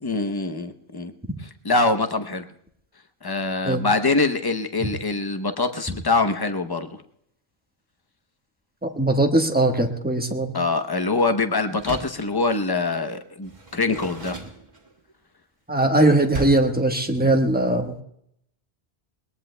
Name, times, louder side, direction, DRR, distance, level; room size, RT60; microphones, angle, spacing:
voice 1, 0.0-1.1 1.6-2.5 3.2-6.9 10.5-14.4, left 3 dB, 25° left, 7 dB, 0.7 m, -24 dB
voice 2, 8.8-10.6 15.7-18.0, right 2 dB, 10° right, 3 dB, 1.2 m, -20 dB
Door, 11.7-12.3 13.4-15.1 16.3-16.8, right 2 dB, 45° right, 1.9 m, -36 dB
21.5 x 20.5 x 2.2 m, 0.72 s
omnidirectional pair, 1.1 m